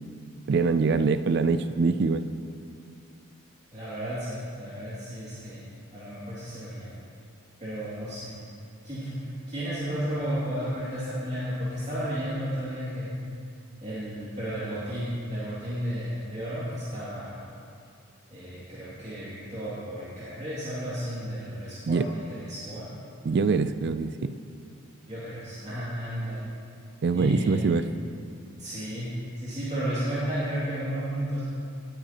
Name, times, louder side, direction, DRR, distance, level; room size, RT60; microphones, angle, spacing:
voice 1, 0.5-2.2 21.9-22.0 23.3-24.3 27.0-27.9, right 4 dB, 50° right, 11 dB, 0.3 m, -24 dB
voice 2, 3.7-5.6 5.9-6.9 7.6-8.3 8.8-9.2 9.5-13.1 13.8-17.4 18.3-22.9 25.1-26.5 27.1-27.7 28.6-29.1 29.4-31.4, equal, 35° right, -11 dB, 2.4 m, -33 dB
19.0 x 8.9 x 2.9 m, 2.4 s
head